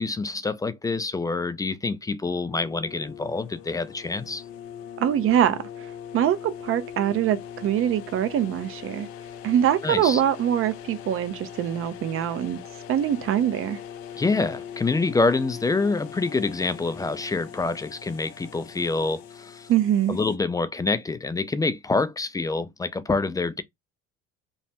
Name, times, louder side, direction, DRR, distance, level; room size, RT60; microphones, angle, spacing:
voice 1, 0.0-4.4 9.8-10.2 14.2-19.7 20.1-23.6, left 3 dB, 10° left, 0.3 m, -26 dB
sound 1, 2.5-20.4, left 9 dB, 80° left, 0.6 m, -41 dB
voice 2, 5.0-5.6 6.1-9.1 9.4-12.6 12.9-13.8 19.7-20.2, right 10 dB, 45° right, 0.6 m, -23 dB
3.1 x 2.1 x 2.8 m
supercardioid pair, 80°, 30 cm